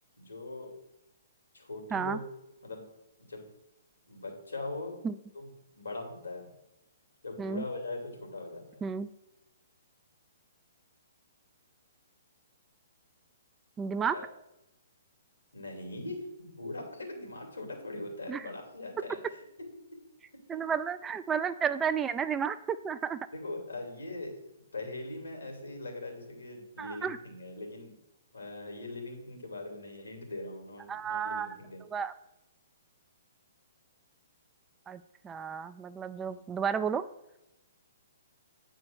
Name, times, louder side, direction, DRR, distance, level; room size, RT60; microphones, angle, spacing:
voice 1, 0.2-0.7 1.5-2.2 2.6-2.8 3.2-3.5 4.1-5.0 5.3-5.5 5.7-6.5 7.2-8.8 14.1-14.3 15.5-19.2 23.3-24.4 24.7-27.9 28.3-31.8 36.2-36.4, left 2 dB, 85° left, 2 dB, 2.7 m, -41 dB
voice 2, 13.8-14.2 18.3-18.4 20.5-23.2 26.8-27.2 30.9-31.5 31.9-32.1 34.9-37.0, right 7 dB, 15° right, 12 dB, 0.3 m, -32 dB
8.6 x 4.5 x 6.1 m, 0.91 s
figure-of-eight pair, 125°, 0 cm